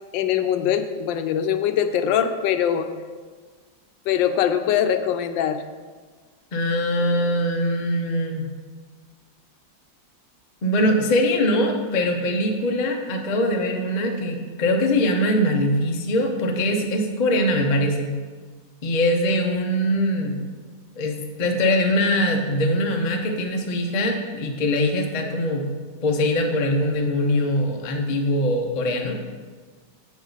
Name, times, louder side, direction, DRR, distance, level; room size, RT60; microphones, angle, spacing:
voice 1, 0.1-2.9 4.1-5.6, left 9 dB, 85° left, 9 dB, 1.3 m, -22 dB
voice 2, 6.5-8.5 10.6-18.2 18.8-20.4 21.0-25.7 26.0-29.3, left 1 dB, 50° left, 3 dB, 0.5 m, -22 dB
7.4 x 7.1 x 4.0 m, 1.5 s
omnidirectional pair, 2.0 m